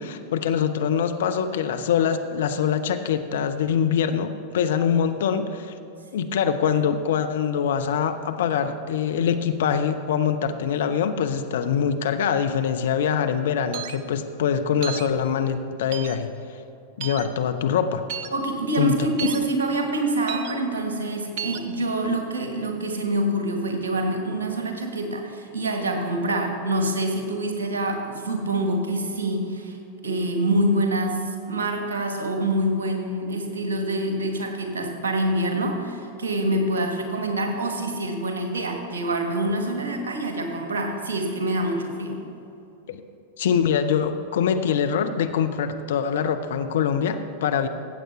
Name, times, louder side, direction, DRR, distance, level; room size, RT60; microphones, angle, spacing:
voice 1, 0.0-5.7 6.1-16.3 17.0-18.1 18.8-19.0 42.9-43.0 43.4-47.7, left 7 dB, 60° left, 8 dB, 0.6 m, -24 dB
sound 1, 13.7-14.0 14.8-15.1 15.9-16.2 17.0-17.3 18.1-18.3 19.2-19.4 20.3-20.5 21.4-21.6, right 9 dB, 50° right, 0.6 m, -33 dB
voice 2, 18.3-29.8 30.0-42.2, right 1 dB, 65° right, 4 dB, 1.3 m, -26 dB
15.5 x 8.0 x 3.1 m, 2.7 s
figure-of-eight pair, 90°, 0 cm